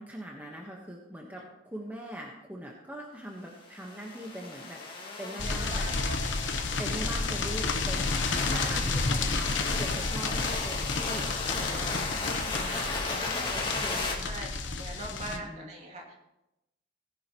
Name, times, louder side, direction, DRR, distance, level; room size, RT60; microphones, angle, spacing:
voice 1, 0.0-5.8 6.8-8.3 8.5-14.5 15.1-15.7, right 1 dB, 10° right, -1 dB, 1.2 m, -42 dB
sound 1, 3.7-14.1, left 3 dB, 25° left, 2.0 m, -35 dB
sound 2, 5.4-15.4, left 3 dB, 70° left, 1.0 m, -31 dB
voice 2, 5.4-6.4 8.3-8.9 10.0-10.4 11.4-11.9 13.9-16.1, right 1 dB, 40° right, 0 dB, 2.5 m, -42 dB
17.5 x 10.5 x 3.0 m, 0.91 s
head